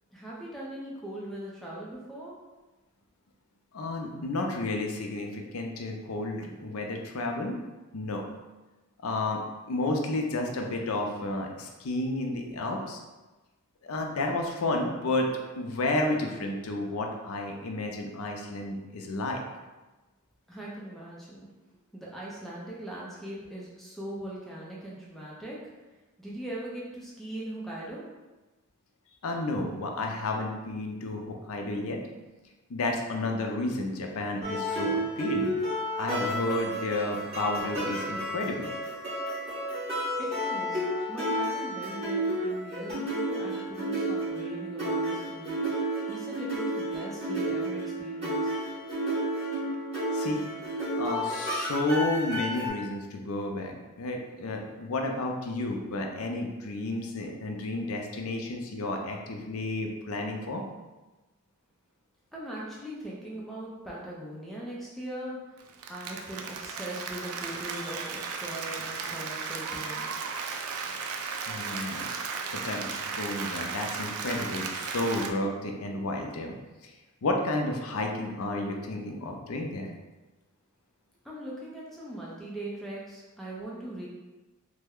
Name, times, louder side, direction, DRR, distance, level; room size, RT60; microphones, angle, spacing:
voice 1, 0.1-2.4 20.5-21.5 21.9-25.7 26.2-28.1 40.2-48.5 62.3-65.6 65.9-70.1 81.2-84.1, right 1 dB, ahead, -6 dB, 0.5 m, -40 dB
voice 2, 3.7-7.6 7.9-8.2 9.0-9.4 9.7-13.0 13.8-15.3 15.6-19.4 29.2-32.0 32.7-35.6 36.0-38.7 50.1-50.4 51.0-60.6 71.5-72.1 72.5-76.5 76.8-76.9 77.2-79.9, left 2 dB, 80° left, 2 dB, 0.5 m, -31 dB
sound 1, 34.4-52.7, right 1 dB, 30° right, 1.3 m, -31 dB
Applause, 65.6-75.3, right 5 dB, 90° right, 0.4 m, -35 dB
3.2 x 2.1 x 3.5 m, 1.2 s
head